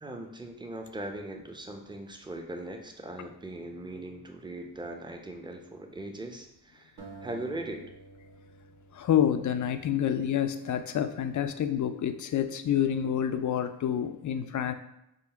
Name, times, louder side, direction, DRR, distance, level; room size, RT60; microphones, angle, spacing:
voice 1, 0.0-7.8, right 1 dB, 10° right, 3 dB, 0.6 m, -40 dB
sound 1, 7.0-10.2, right 3 dB, 65° right, 1.4 m, -50 dB
voice 2, 8.9-14.7, left 9 dB, 45° left, 9 dB, 0.4 m, -28 dB
3.7 x 2.1 x 4.3 m, 0.85 s
cardioid pair, 55°, 42 cm